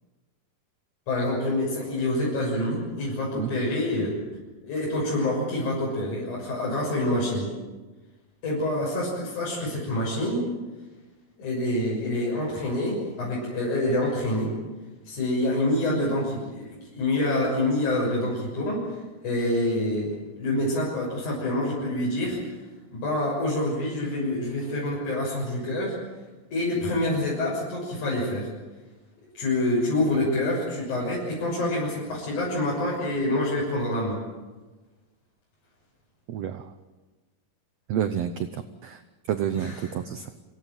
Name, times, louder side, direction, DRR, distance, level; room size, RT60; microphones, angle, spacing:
voice 1, 1.1-4.1 4.6-7.5 8.4-10.5 11.4-14.6 15.1-18.9 19.2-20.1 20.4-22.4 22.9-26.0 26.5-28.5 29.3-34.2 39.5-39.7, left 1 dB, 60° left, -5 dB, 8.1 m, -26 dB
voice 2, 36.3-36.7 37.9-39.0 39.3-40.3, right 9 dB, 70° right, 9 dB, 1.6 m, -29 dB
26.5 x 17.5 x 9.3 m, 1.2 s
omnidirectional pair, 4.1 m